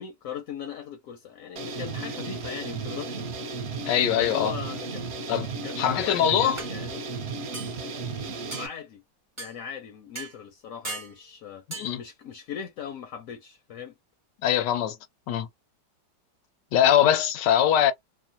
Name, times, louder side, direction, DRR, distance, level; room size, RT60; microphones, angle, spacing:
voice 1, 0.0-3.5 4.2-5.1 5.6-7.0 8.5-9.0 9.4-11.6 12.0-13.9, left 8 dB, 65° left, 0.9 m, -39 dB
sound 1, 1.6-8.7, right 4 dB, 55° right, 0.7 m, -34 dB
voice 2, 3.8-4.5 5.3-5.5 5.8-6.6 11.7-12.0 14.4-15.0 15.3-15.5 16.7-17.9, left 10 dB, 80° left, 1.2 m, -22 dB
sound 2, 6.6-6.7 7.5-7.8 8.5-8.7 9.4-9.5 10.2-10.3 10.8-11.1 11.7-11.9, right 3 dB, 25° right, 0.8 m, -37 dB
3.1 x 2.1 x 2.7 m
omnidirectional pair, 1.9 m